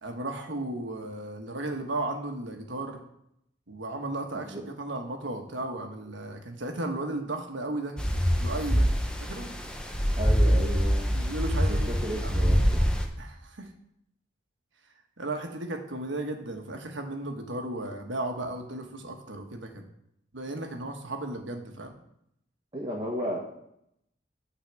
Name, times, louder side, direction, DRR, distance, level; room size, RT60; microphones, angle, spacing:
voice 1, 0.0-3.0 3.7-8.0 8.4-8.9 9.2-9.5 11.1-12.6 13.2-13.7 15.2-19.8 20.3-21.9, right 2 dB, 90° right, 4 dB, 1.3 m, -35 dB
sound 1, 8.0-13.1, equal, 5° left, 0.8 m, -25 dB
voice 2, 10.2-11.1 11.7-12.9 22.7-23.4, equal, 25° right, -3 dB, 1.4 m, -34 dB
9.5 x 4.1 x 7.3 m, 0.77 s
head